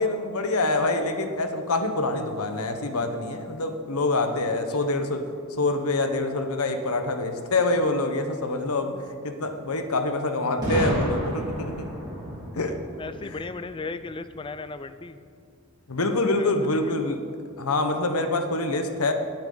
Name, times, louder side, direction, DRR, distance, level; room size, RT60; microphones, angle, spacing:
voice 1, 0.0-5.2 5.6-8.9 9.2-11.9 12.5-12.8 13.2-13.4 15.9-17.2 17.6-19.1, left 2 dB, 85° left, 7 dB, 1.1 m, -26 dB
Boom, 10.6-14.4, equal, 20° right, 3.4 m, -31 dB
voice 2, 12.9-15.2 16.4-17.2, left 3 dB, 25° left, 12 dB, 0.4 m, -37 dB
19.0 x 9.0 x 3.9 m, 2.4 s
head